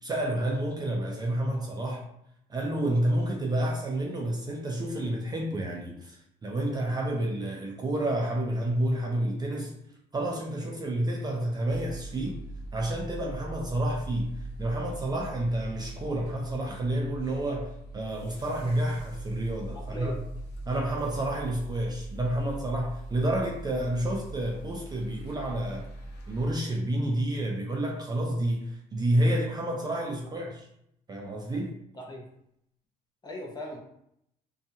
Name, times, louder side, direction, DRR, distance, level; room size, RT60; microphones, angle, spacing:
voice 1, 0.0-2.0 2.5-6.2 6.4-9.7 10.1-12.4 12.7-20.1 20.7-25.9 26.3-30.7 31.1-31.8, right 1 dB, 25° right, 0.4 m, -29 dB
sound 1, 11.7-26.5, right 1 dB, 85° left, 0.6 m, -41 dB
voice 2, 19.7-20.2 31.9-32.2 33.2-33.8, left 1 dB, 25° left, 0.7 m, -39 dB
2.6 x 2.3 x 2.7 m
cardioid pair, 110°, 17 cm